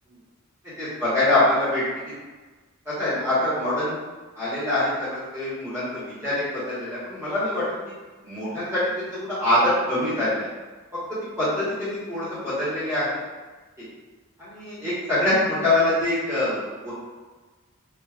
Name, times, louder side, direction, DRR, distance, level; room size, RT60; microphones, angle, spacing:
voice 1, 0.8-2.2 2.8-4.0 4.4-7.9 8.2-10.5 11.1-13.2 13.8-13.9 14.4-16.9, left 1 dB, 15° right, -13 dB, 1.1 m, -24 dB
4.5 x 2.4 x 2.4 m, 1.3 s
head